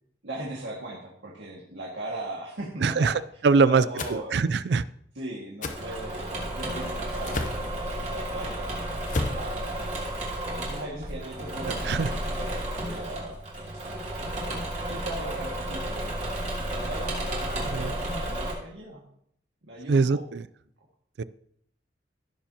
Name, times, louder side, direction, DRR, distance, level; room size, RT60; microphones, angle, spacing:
voice 1, 0.2-3.1 3.6-4.4 5.1-8.7 9.3-9.9 10.6-13.4 14.9-16.2 16.7-19.1 19.6-20.2, right 1 dB, 85° right, -3 dB, 2.0 m, -38 dB
voice 2, 2.8-3.1 3.4-3.8 4.1-4.8 11.6-12.1 17.6-17.9 19.9-20.4 21.2-21.3, right 4 dB, 70° right, 18 dB, 0.4 m, -23 dB
sound 1, 4.0-4.2 5.6-5.8 7.3-7.6 9.1-9.4, left 2 dB, 45° left, 0.8 m, -30 dB
Engine / Mechanisms, 5.7-18.5, right 1 dB, 40° right, 2.9 m, -32 dB
16.0 x 7.1 x 2.9 m, 0.70 s
head